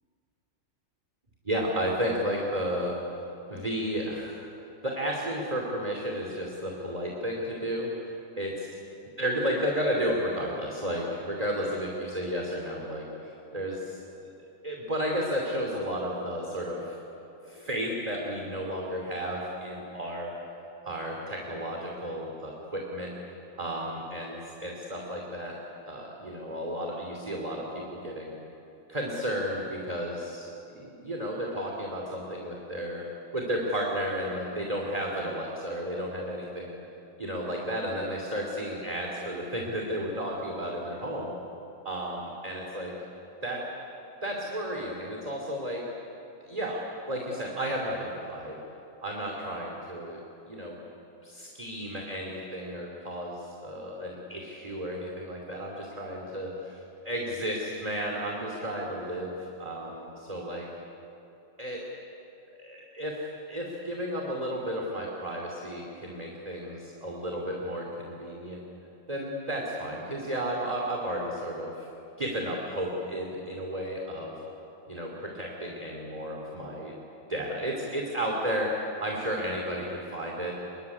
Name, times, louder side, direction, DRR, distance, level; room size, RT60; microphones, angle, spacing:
voice 1, 1.5-7.9 8.4-8.5 9.2-14.0 14.6-17.0 17.4-20.3 20.8-23.1 23.6-25.6 25.9-28.3 28.9-33.0 33.3-36.8 37.2-41.3 41.8-42.9 43.4-43.6 44.2-45.9 46.4-46.8 47.1-48.6 49.0-50.2 50.5-50.8 51.2-60.7 61.6-61.9 62.6-63.2 63.5-68.6 69.1-71.9 72.2-74.3 74.9-76.9 77.3-80.6, equal, 20° right, -1 dB, 2.7 m, -33 dB
25.0 x 22.5 x 9.7 m, 2.9 s
omnidirectional pair, 2.1 m